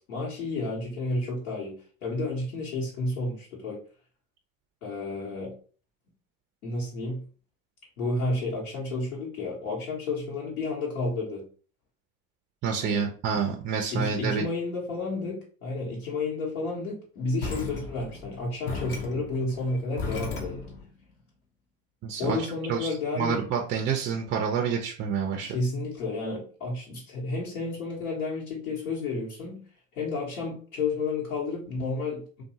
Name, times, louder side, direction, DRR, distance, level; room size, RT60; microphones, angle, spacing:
voice 1, 0.1-1.8 2.0-3.8 4.8-5.5 6.6-7.3 8.0-11.4 12.8-13.1 13.9-20.6 22.2-23.4 25.4-29.6 29.9-32.4, left 3 dB, 75° left, -6 dB, 1.1 m, -31 dB
voice 2, 12.6-14.4 22.0-22.9 23.2-25.6, right 6 dB, 30° right, 3 dB, 0.4 m, -28 dB
sound 1, 17.4-20.9, left 3 dB, 25° left, 0.7 m, -35 dB
2.6 x 2.3 x 2.8 m, 0.41 s
hypercardioid pair, 80°, 42 cm